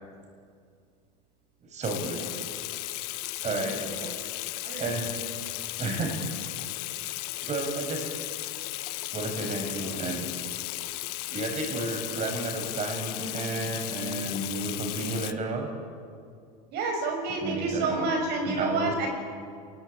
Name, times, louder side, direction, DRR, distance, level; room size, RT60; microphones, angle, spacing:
voice 1, 1.6-2.3 3.4-4.0 4.8-5.1 5.8-6.2 7.4-8.1 9.1-10.3 11.3-15.7 17.4-18.1 18.4-19.1, right 2 dB, 35° right, 4 dB, 7.4 m, -32 dB
Water tap faucet / Sink (filling or washing), 1.8-15.3, left 19 dB, 70° left, 1.4 m, -35 dB
voice 2, 4.6-5.0 16.7-19.1, right 3 dB, 55° right, 3 dB, 6.4 m, -29 dB
28.5 x 22.0 x 8.8 m, 2.3 s
supercardioid pair, 105°, 20 cm